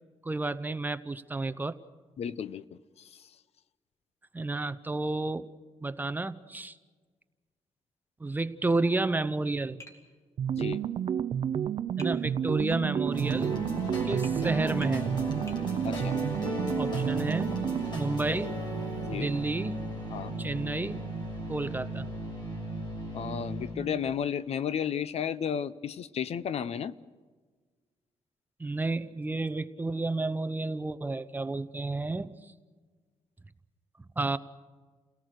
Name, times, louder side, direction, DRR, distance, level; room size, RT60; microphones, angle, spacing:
voice 1, 0.2-1.8 4.3-5.5 5.8-6.7 8.2-9.8 12.0-13.6 14.0-15.1 16.8-17.6 18.0-18.5 19.1-19.8 20.4-21.0 21.5-22.1 28.6-32.3 34.2-34.4, right 2 dB, 15° right, 12 dB, 0.7 m, -31 dB
voice 2, 2.2-3.3 10.5-10.8 15.8-16.2 19.1-19.3 20.1-20.3 23.1-26.9, left 8 dB, 65° left, 16 dB, 0.7 m, -33 dB
Tap, 9.8-10.1 12.0-12.2 14.2-14.4 14.8-15.0 15.5-15.6, left 2 dB, 25° left, 2.9 m, -48 dB
sound 1, 10.4-18.0, right 9 dB, 55° right, 0.6 m, -30 dB
sound 2, 13.1-23.8, right 1 dB, 40° left, 6.5 m, -35 dB
29.5 x 18.0 x 6.6 m, 1.4 s
wide cardioid pair, 130°, 11 cm